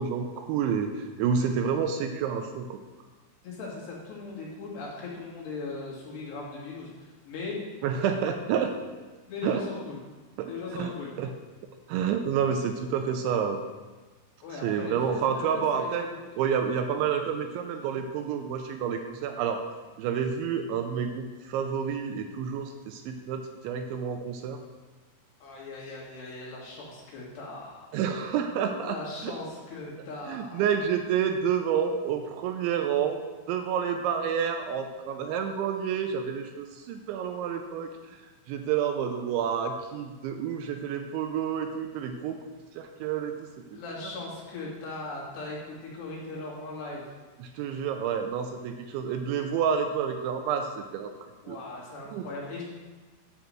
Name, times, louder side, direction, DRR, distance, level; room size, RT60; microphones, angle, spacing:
voice 1, 0.0-2.8 7.8-8.7 9.4-9.6 10.4-10.5 10.8-10.9 11.2-11.3 11.9-13.6 14.6-16.1 16.4-19.6 20.0-24.6 27.9-29.0 29.2-29.3 30.3-37.9 38.5-42.4 42.8-43.4 43.7-43.8 47.4-51.1 51.5-51.6 52.1-52.2, right 7 dB, 80° right, 5 dB, 2.9 m, -29 dB
voice 2, 3.4-7.6 9.3-10.0 10.5-11.1 14.4-16.2 25.4-27.9 28.8-30.7 43.7-47.1 51.4-52.6, left 3 dB, 65° left, -5 dB, 4.2 m, -39 dB
9.8 x 5.0 x 7.7 m, 1.3 s
omnidirectional pair, 5.6 m